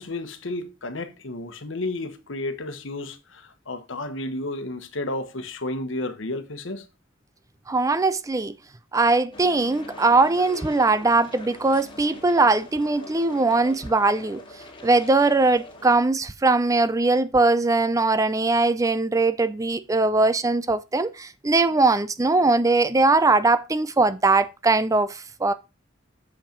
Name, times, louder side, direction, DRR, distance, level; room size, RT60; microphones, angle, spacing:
voice 1, 0.0-6.8, left 2 dB, 80° left, 1.1 m, -32 dB
voice 2, 7.7-8.5 8.9-14.4 14.8-25.5, right 3 dB, 15° right, 0.4 m, -21 dB
sound 1, 9.3-16.0, left 1 dB, 30° left, 2.3 m, -43 dB
7.2 x 5.4 x 5.1 m
head